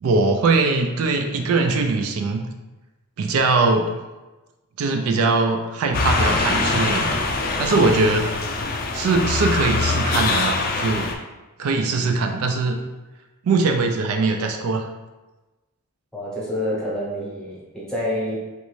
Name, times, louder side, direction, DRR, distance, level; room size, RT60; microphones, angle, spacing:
voice 1, 0.0-2.4 3.2-3.9 4.8-7.2 7.6-8.3 8.9-11.1 11.6-12.8 13.4-14.9, right 3 dB, 75° right, 4 dB, 0.4 m, -21 dB
sound 1, 5.9-11.1, left 3 dB, 45° left, 0.3 m, -23 dB
voice 2, 16.1-18.4, left 1 dB, 5° left, -6 dB, 0.8 m, -27 dB
3.2 x 2.5 x 3.1 m, 1.1 s
head